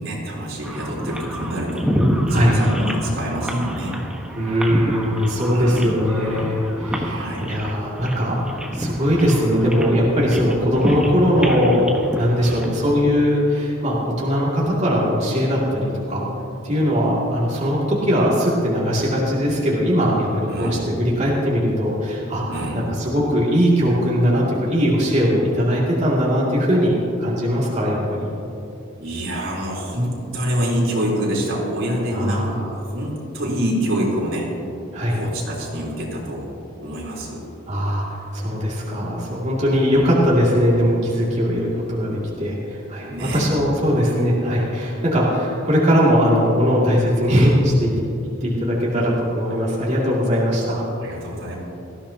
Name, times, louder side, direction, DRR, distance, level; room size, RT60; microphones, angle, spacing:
voice 1, 0.0-1.9 2.3-4.0 5.5-6.0 7.0-7.5 12.4-12.6 20.5-20.8 22.5-22.9 29.0-34.5 35.1-36.5 36.8-37.4 39.9-40.1 43.0-43.4 51.0-51.6, equal, 85° right, -4 dB, 3.7 m, -26 dB
sound 1, 0.6-13.0, equal, 5° right, 1.3 m, -27 dB
voice 2, 2.2-2.6 4.4-16.3 16.6-22.4 22.7-28.3 32.1-32.6 34.9-35.2 37.7-47.9 48.4-50.8, equal, 35° right, -6 dB, 2.5 m, -20 dB
19.0 x 14.5 x 2.9 m, 2.8 s
head